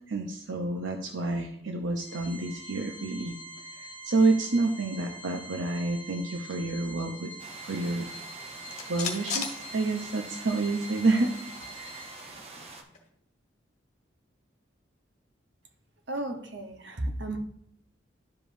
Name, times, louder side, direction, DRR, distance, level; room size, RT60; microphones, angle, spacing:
voice 1, 0.1-3.3 3.8-7.3 7.6-8.1 8.9-11.3 11.8-12.0, right 3 dB, 85° right, 4 dB, 0.7 m, -28 dB
Organ, 2.0-12.6, right 1 dB, 80° left, 0.8 m, -45 dB
sound 1, 7.4-12.8, right 3 dB, 35° right, 0.9 m, -46 dB
sound 2, 8.0-10.5 10.8-10.9 11.2-13.1, left 5 dB, 40° left, 1.5 m, -39 dB
voice 2, 16.1-17.4, right 1 dB, 65° right, 4 dB, 1.0 m, -34 dB
11.5 x 5.0 x 2.6 m, 0.71 s
head